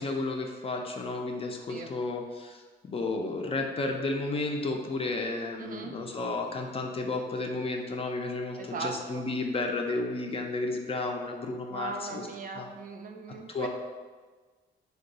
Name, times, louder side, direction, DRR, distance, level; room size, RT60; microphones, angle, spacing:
voice 1, 0.0-12.3 12.5-12.7 13.5-13.7, left 3 dB, 30° left, 2 dB, 0.4 m, -32 dB
voice 2, 5.6-6.0 8.6-9.3 11.7-13.7, right 4 dB, 45° right, 3 dB, 0.4 m, -39 dB
2.6 x 2.3 x 3.9 m, 1.4 s
cardioid pair, 90°, 20 cm